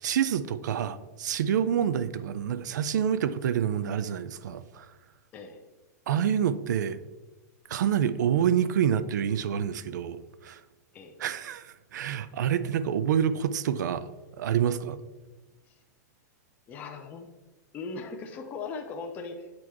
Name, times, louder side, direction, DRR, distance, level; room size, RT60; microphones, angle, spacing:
voice 1, 0.0-4.9 6.1-7.0 7.7-10.6 11.2-14.1 14.4-15.0, right 9 dB, 75° right, 14 dB, 0.5 m, -27 dB
voice 2, 5.3-5.6 10.9-11.1 15.7-15.8 16.7-17.3 17.7-19.5, left 4 dB, 15° left, 4 dB, 0.5 m, -39 dB
8.6 x 3.0 x 4.6 m, 1.2 s
supercardioid pair, 165°, 10 cm